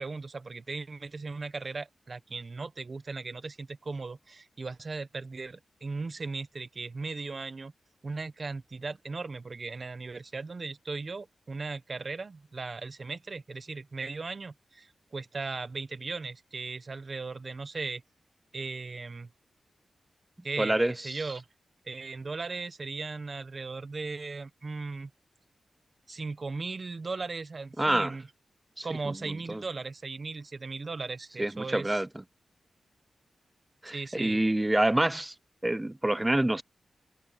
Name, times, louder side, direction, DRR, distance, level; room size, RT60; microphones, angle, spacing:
voice 1, 0.0-7.7 8.0-18.0 18.5-19.3 20.4-21.4 21.8-25.1 26.1-28.3 28.8-32.0 33.9-34.4, right 3 dB, 35° right, 1.3 m, -37 dB
voice 2, 20.6-21.2 27.8-28.1 28.8-29.6 31.4-32.1 33.8-35.3 35.6-36.6, right 1 dB, 10° right, 0.5 m, -27 dB
wide cardioid pair, 160°, 0 cm